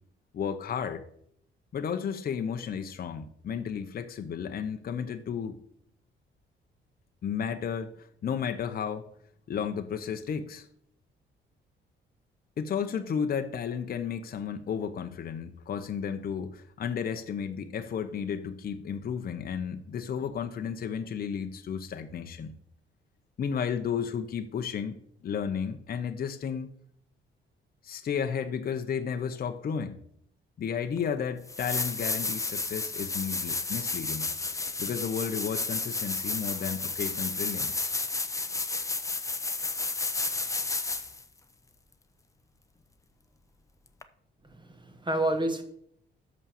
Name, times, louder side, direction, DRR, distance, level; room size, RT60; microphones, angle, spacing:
voice 1, 0.3-1.0 1.7-5.6 7.2-9.1 9.5-10.7 12.6-22.5 23.4-26.7 27.8-30.0 30.6-37.9, left 7 dB, 50° left, 7 dB, 0.8 m, -33 dB
sound 1, 31.0-31.1 31.5-41.2 44.0-44.1, left 3 dB, 15° left, 0.7 m, -32 dB
voice 2, 44.5-45.6, right 1 dB, 25° right, 7 dB, 1.4 m, -29 dB
6.3 x 5.6 x 7.0 m, 0.67 s
cardioid pair, 90°, 20 cm